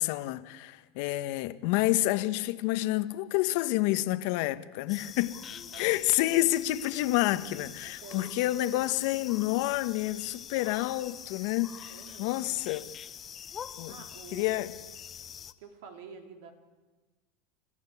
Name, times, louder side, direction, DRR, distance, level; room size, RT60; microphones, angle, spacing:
voice 1, 0.0-5.4 5.8-12.9 13.8-14.0 14.3-14.7, left 16 dB, 65° left, 1.2 m, -29 dB
sound 1, 4.9-15.5, left 8 dB, 30° left, 1.1 m, -45 dB
voice 2, 7.8-8.4 8.7-9.3 11.9-12.4 13.9-14.5 15.6-16.5, right 5 dB, 75° right, 3.2 m, -48 dB
29.0 x 14.5 x 8.5 m
supercardioid pair, 120°, 0 cm